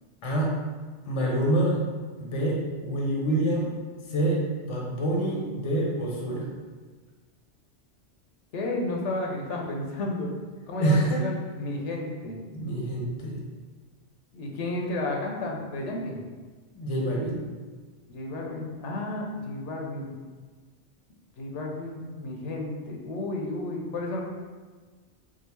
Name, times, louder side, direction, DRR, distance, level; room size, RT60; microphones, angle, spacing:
voice 1, 0.2-0.5 1.0-1.8 2.2-3.7 4.1-6.5 10.8-11.2 12.5-13.4 16.7-17.4, right 1 dB, 30° left, -2 dB, 0.7 m, -26 dB
voice 2, 8.5-10.3 10.7-12.4 14.3-16.2 18.1-20.1 21.4-24.2, left 2 dB, 85° left, -1 dB, 1.0 m, -32 dB
3.7 x 2.4 x 4.4 m, 1.4 s
omnidirectional pair, 1.2 m